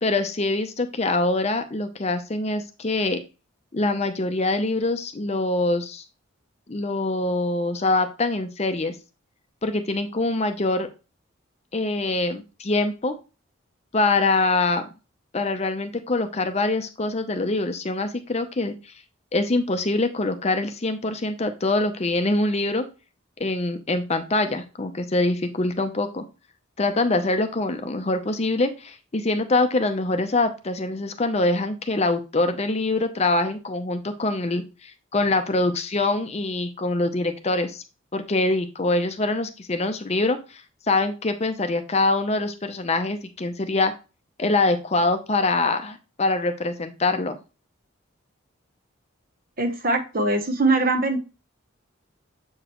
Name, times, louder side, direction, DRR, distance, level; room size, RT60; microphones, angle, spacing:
voice 1, 0.0-3.2 3.7-6.0 6.7-8.9 9.6-10.9 11.7-13.1 13.9-14.8 15.3-18.7 19.3-22.8 23.4-26.2 26.8-37.8 38.1-40.6 40.9-43.9 44.4-47.4, left 2 dB, 30° left, 8 dB, 0.6 m, -24 dB
voice 2, 49.6-51.2, right 2 dB, 45° right, 8 dB, 0.9 m, -22 dB
7.4 x 5.0 x 3.0 m, 0.31 s
head